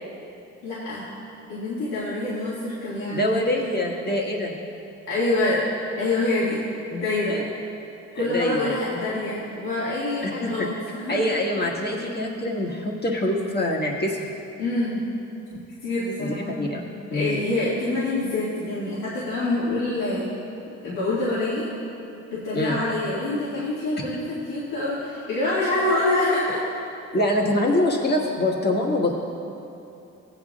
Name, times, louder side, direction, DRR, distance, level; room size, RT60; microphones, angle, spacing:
voice 1, 0.6-1.1 1.5-3.2 5.1-5.6 6.0-6.6 6.9-7.4 8.1-11.3 14.6-15.0 15.8-16.6 17.1-20.3 20.8-21.7 22.3-26.6, left 2 dB, 90° left, -10 dB, 2.1 m, -26 dB
voice 2, 3.1-4.5 7.3-7.4 8.1-8.8 10.2-10.5 11.1-14.3 15.5-15.6 16.2-17.4 22.5-22.8 27.1-29.2, left 1 dB, 35° left, -2 dB, 1.6 m, -25 dB
15.5 x 9.2 x 2.4 m, 2.7 s
cardioid pair, 90°, 30 cm